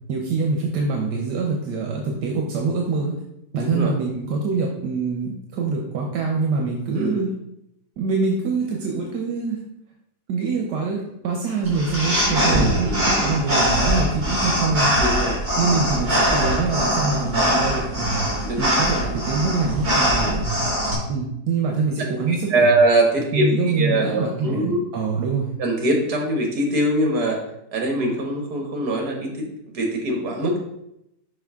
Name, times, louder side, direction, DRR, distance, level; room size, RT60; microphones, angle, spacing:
voice 1, 0.1-3.1 3.5-7.3 8.0-9.6 10.3-14.9 15.6-18.2 18.6-20.6 21.1-22.7 23.3-25.5, right 4 dB, 85° right, 0 dB, 1.4 m, -24 dB
voice 2, 3.6-3.9 6.9-7.2 12.4-13.3 14.9-15.4 18.4-18.7 20.1-20.4 22.3-24.8 25.6-27.4 27.7-30.6, right 1 dB, 70° right, 1 dB, 1.9 m, -23 dB
sound 1, 11.6-20.9, equal, 45° right, 2.7 m, -22 dB
6.2 x 5.0 x 3.6 m, 0.81 s
omnidirectional pair, 1.8 m